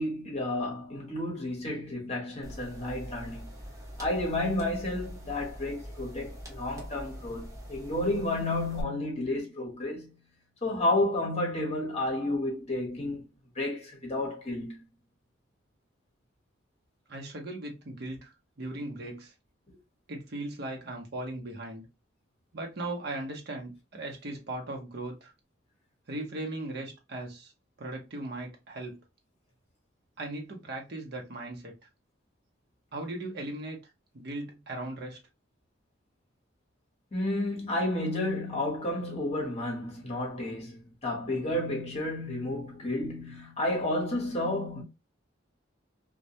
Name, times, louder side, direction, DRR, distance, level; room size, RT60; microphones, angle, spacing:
voice 1, 0.0-3.5 4.0-10.1 10.6-13.3 13.5-14.8 19.7-19.8 37.1-44.8, left 1 dB, 35° left, 0.9 m, -31 dB
sound 1, 2.4-8.8, equal, 15° right, 0.6 m, -43 dB
voice 2, 17.1-19.3 20.1-21.9 22.5-25.3 26.1-27.5 27.8-29.0 30.2-31.7 32.9-35.2, right 2 dB, 55° right, 0.8 m, -38 dB
2.2 x 2.1 x 2.7 m
head